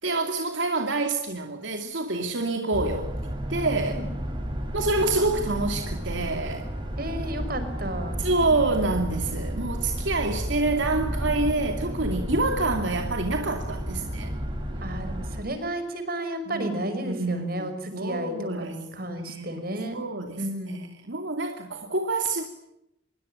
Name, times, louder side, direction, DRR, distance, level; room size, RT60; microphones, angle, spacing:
voice 1, 0.0-3.1 3.5-4.0 4.7-6.7 8.2-14.3 16.5-18.8 19.2-22.5, right 2 dB, 80° right, 4 dB, 2.7 m, -27 dB
sound 1, 2.7-15.4, equal, 25° right, 7.0 m, -32 dB
voice 2, 7.0-8.2 14.8-20.0 20.4-20.8, right 1 dB, 50° right, 9 dB, 5.6 m, -33 dB
25.0 x 22.5 x 9.0 m, 0.82 s
head